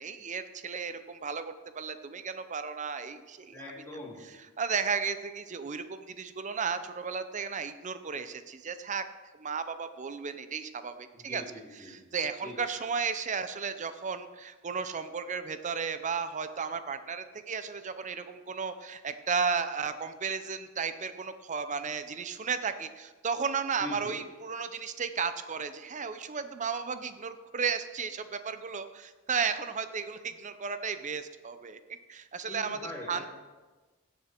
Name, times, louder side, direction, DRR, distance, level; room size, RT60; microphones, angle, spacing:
voice 1, 0.0-3.6 4.6-9.1 9.4-11.4 11.7-33.2, right 5 dB, 35° right, 11 dB, 0.6 m, -34 dB
voice 2, 3.5-4.2 11.1-12.0 12.4-12.6 23.8-24.2 32.5-33.3, left 1 dB, 10° left, -5 dB, 3.1 m, -42 dB
16.0 x 7.0 x 4.5 m, 1.3 s
head